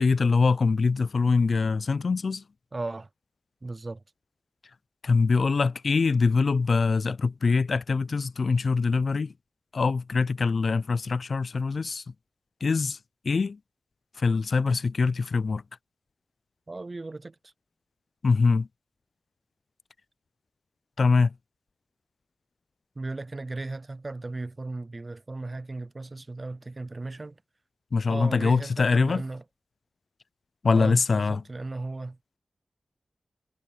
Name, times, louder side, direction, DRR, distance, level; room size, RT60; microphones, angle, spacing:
voice 1, 0.0-2.4 5.0-9.3 9.7-12.0 12.6-13.0 13.3-13.6 14.2-15.6 18.2-18.7 21.0-21.3 27.9-29.2 30.6-31.4, left 4 dB, 65° left, 0.3 m, -23 dB
voice 2, 2.7-3.1 3.6-4.0 16.7-17.5 23.0-27.4 28.1-29.4 30.7-32.2, right 2 dB, 35° right, 0.5 m, -36 dB
wide cardioid pair, 90°, 0 cm